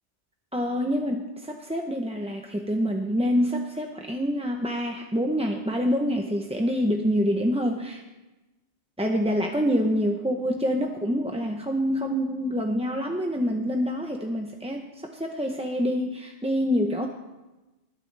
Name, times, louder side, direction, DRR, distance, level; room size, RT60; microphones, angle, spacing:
voice 1, 0.5-8.0 9.0-17.1, equal, 5° right, 2 dB, 0.6 m, -26 dB
20.5 x 11.5 x 3.3 m, 1.1 s
omnidirectional pair, 1.2 m